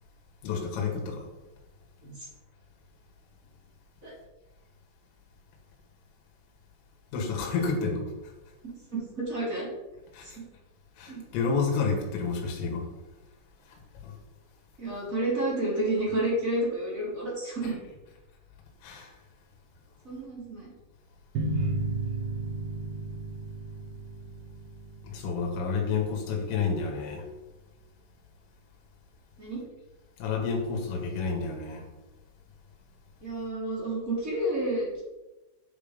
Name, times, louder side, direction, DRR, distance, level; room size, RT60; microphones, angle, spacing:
voice 1, 0.4-1.3 7.1-8.0 10.1-10.4 11.0-12.8 14.0-14.1 18.8-19.1 25.0-27.2 30.2-31.8, left 5 dB, 85° left, 0 dB, 4.5 m, -30 dB
voice 2, 7.3-7.7 8.6-9.7 10.2-10.3 11.1-11.2 14.8-17.7 20.0-20.7 29.4-29.6 33.2-35.0, right 1 dB, 20° right, -6 dB, 2.8 m, -30 dB
sound 1, 21.4-26.5, right 2 dB, 60° right, 3.2 m, -34 dB
9.6 x 7.2 x 5.3 m, 1.1 s
omnidirectional pair, 5.8 m